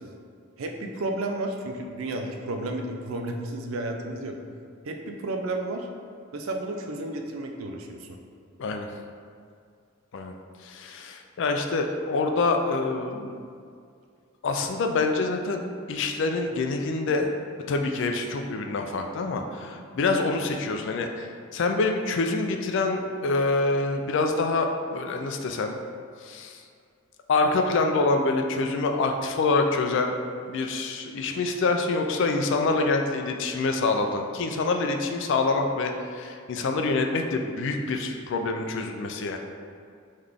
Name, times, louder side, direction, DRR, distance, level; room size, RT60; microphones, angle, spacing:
voice 1, 0.6-4.4 4.8-5.9 6.3-8.2, right 2 dB, 80° right, 3 dB, 0.5 m, -32 dB
voice 2, 10.6-13.4 14.4-17.3 17.7-25.8 26.2-26.6 27.3-30.1 30.4-39.4, left 3 dB, 60° left, 4 dB, 0.4 m, -26 dB
3.8 x 3.1 x 3.5 m, 2.3 s
head